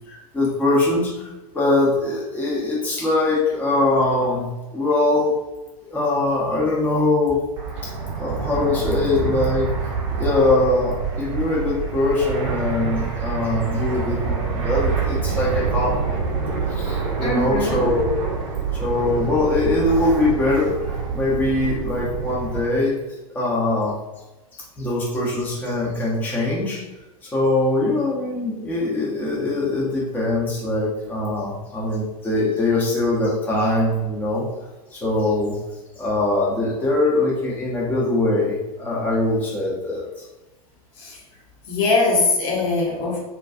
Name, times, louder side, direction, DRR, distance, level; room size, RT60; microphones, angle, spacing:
voice 1, 0.1-4.5 4.7-5.3 5.9-7.4 8.1-9.7 10.2-16.3 16.7-18.1 18.7-23.0 23.3-24.0 24.5-26.8 27.2-34.5 34.9-35.6 35.9-40.3, left 2 dB, 10° left, -6 dB, 0.6 m, -22 dB
Fixed-wing aircraft airplane, 7.6-22.7, right 5 dB, 50° right, 0.5 m, -26 dB
voice 2, 17.2-17.9 41.0-41.2 41.7-43.2, left 3 dB, 45° left, -2 dB, 0.7 m, -21 dB
2.4 x 2.3 x 2.3 m, 1.0 s
figure-of-eight pair, 90°, 19 cm